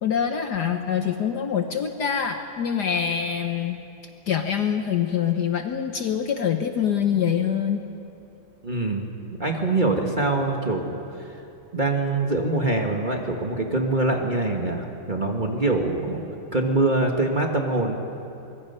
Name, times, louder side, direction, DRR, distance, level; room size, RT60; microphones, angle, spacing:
voice 1, 0.0-3.8 4.3-7.8, left 8 dB, 60° left, 6 dB, 1.2 m, -25 dB
voice 2, 8.6-9.1 9.4-11.0 11.7-16.2 16.5-18.0, right 2 dB, 25° right, 1 dB, 1.4 m, -24 dB
24.0 x 22.0 x 5.5 m, 2.8 s
omnidirectional pair, 2.4 m